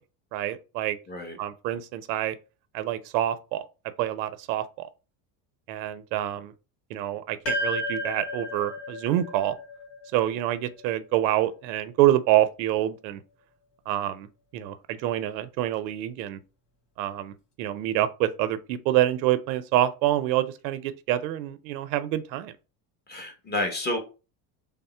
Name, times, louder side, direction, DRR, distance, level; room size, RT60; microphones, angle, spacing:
voice 1, 0.3-1.0 1.4-2.3 2.7-3.6 4.0-4.9 5.7-6.5 6.9-9.5 10.1-13.2 13.9-14.3 14.5-16.4 17.0-22.5, right 13 dB, 90° right, 0.6 m, -26 dB
voice 2, 1.1-1.4 23.1-24.0, left 1 dB, 20° left, 1.0 m, -30 dB
sound 1, 7.4-11.9, left 1 dB, 55° left, 1.9 m, -34 dB
3.5 x 2.1 x 4.2 m
supercardioid pair, 110°, 50 cm